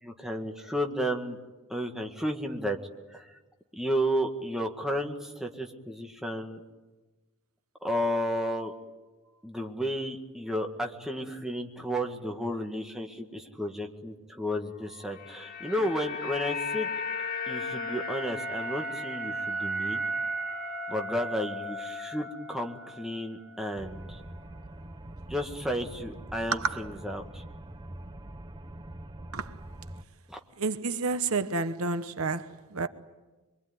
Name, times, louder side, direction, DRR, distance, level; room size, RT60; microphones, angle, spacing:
voice 1, 0.0-1.4 1.7-2.8 3.1-3.4 3.7-6.6 7.8-8.7 9.4-16.9 17.5-20.0 20.9-24.2 25.3-27.4 30.3-30.4, equal, ahead, 1.9 m, -32 dB
sound 1, 14.9-23.2 23.5-23.7, left 1 dB, 45° left, 2.3 m, -35 dB
sound 2, 23.8-30.0, right 1 dB, 20° right, 0.9 m, -44 dB
voice 2, 26.5-26.8 29.3-29.5 30.6-32.9, right 4 dB, 65° right, 1.1 m, -30 dB
24.5 x 24.0 x 9.6 m
head